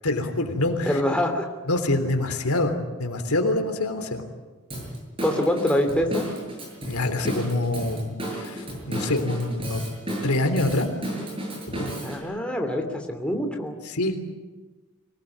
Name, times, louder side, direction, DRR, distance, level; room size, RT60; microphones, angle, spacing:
voice 1, 0.0-1.0 1.7-4.2 6.9-9.8 10.2-10.9 11.7-11.9 13.9-14.2, left 2 dB, 85° left, 6 dB, 3.4 m, -25 dB
voice 2, 0.8-1.5 5.2-6.2 12.0-13.7, left 1 dB, 5° left, 3 dB, 2.9 m, -25 dB
Drum kit / Drum, 4.7-12.2, right 1 dB, 25° right, 7.3 m, -33 dB
25.5 x 19.0 x 9.4 m, 1.3 s
head